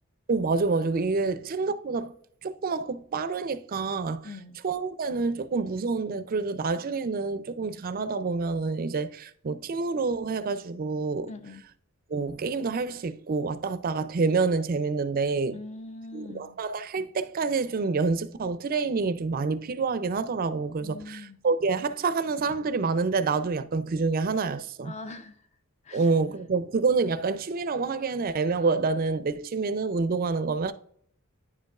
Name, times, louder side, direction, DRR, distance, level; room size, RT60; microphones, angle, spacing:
voice 1, 0.3-2.1 2.4-4.3 4.6-11.3 12.1-15.6 16.1-24.9 25.9-30.7, right 4 dB, 40° right, 0.4 m, -27 dB
voice 2, 4.2-4.6 11.3-11.6 15.5-16.5 20.8-21.4 24.8-25.4 25.8-26.1, left 3 dB, 30° left, 0.6 m, -42 dB
9.4 x 5.3 x 2.4 m
head